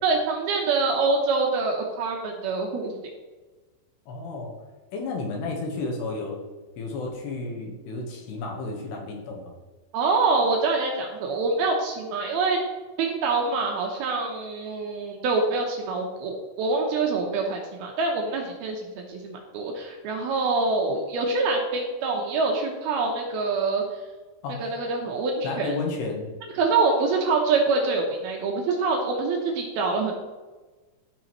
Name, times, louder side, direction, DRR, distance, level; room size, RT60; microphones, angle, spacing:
voice 1, 0.0-3.0 9.9-12.6 13.0-23.8 24.6-25.7 26.5-30.1, right 3 dB, 75° right, 1 dB, 2.5 m, -25 dB
voice 2, 4.1-4.6 4.9-6.4 6.8-9.5 24.4-24.6 25.4-26.3, left 3 dB, 70° left, 0 dB, 3.2 m, -32 dB
14.0 x 6.1 x 3.1 m, 1.3 s
omnidirectional pair, 5.2 m